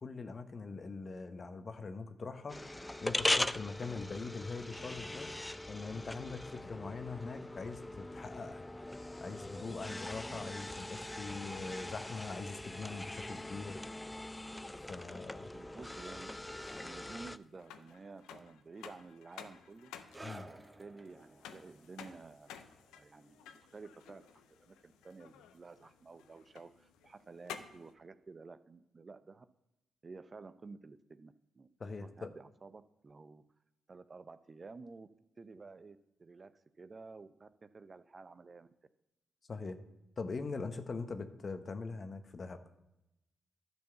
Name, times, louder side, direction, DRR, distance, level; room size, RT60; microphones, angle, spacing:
voice 1, 0.0-2.6 3.0-5.3 5.7-8.7 9.2-13.8 14.9-15.5 20.2-20.5 31.8-32.3 39.5-39.8 40.2-42.6, left 4 dB, 50° left, 9 dB, 1.1 m, -42 dB
sound 1, 2.5-17.4, left 1 dB, 15° left, 0.4 m, -40 dB
voice 2, 15.5-19.9 20.5-22.6 22.9-29.5 30.0-31.7 32.0-33.4 33.9-35.1 35.4-38.7, right 4 dB, 45° right, 13 dB, 0.6 m, -52 dB
sound 2, 16.3-27.9, left 9 dB, 90° left, 0.6 m, -54 dB
sound 3, 20.1-27.1 27.3-27.6 28.3-28.4, right 1 dB, 15° right, 1.0 m, -56 dB
10.5 x 4.6 x 6.9 m, 0.90 s
supercardioid pair, 45°, 0 cm